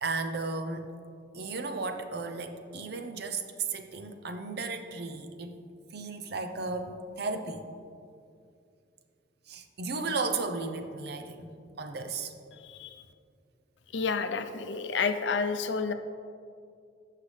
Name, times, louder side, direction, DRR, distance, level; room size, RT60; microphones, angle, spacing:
voice 1, 0.0-0.9 1.3-3.4 3.7-5.6 5.9-7.6 9.5-11.5 11.8-12.3, right 3 dB, 60° right, 6 dB, 0.7 m, -34 dB
voice 2, 12.6-13.0 13.9-15.9, left 5 dB, 85° left, 9 dB, 0.6 m, -30 dB
14.5 x 5.8 x 3.3 m, 2.4 s
head